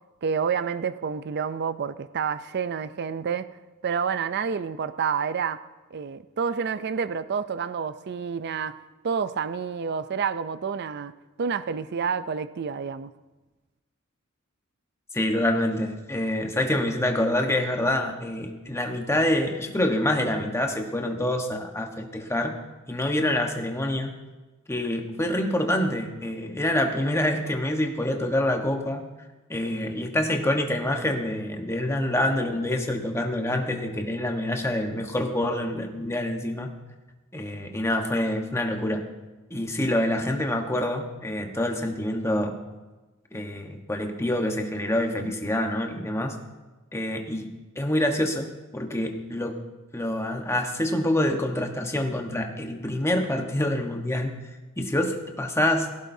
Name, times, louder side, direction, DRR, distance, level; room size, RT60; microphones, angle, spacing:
voice 1, 0.2-3.5 3.8-5.6 5.9-8.8 9.0-13.1, right 6 dB, 55° right, 0.4 m, -29 dB
voice 2, 15.1-22.5 22.9-24.1 24.7-29.0 29.5-36.7 37.3-39.0 39.5-42.6 43.3-46.4 46.9-47.5 47.8-49.6 49.9-54.3 54.8-55.9, left 1 dB, 15° left, 1.2 m, -26 dB
18.0 x 16.0 x 2.7 m
head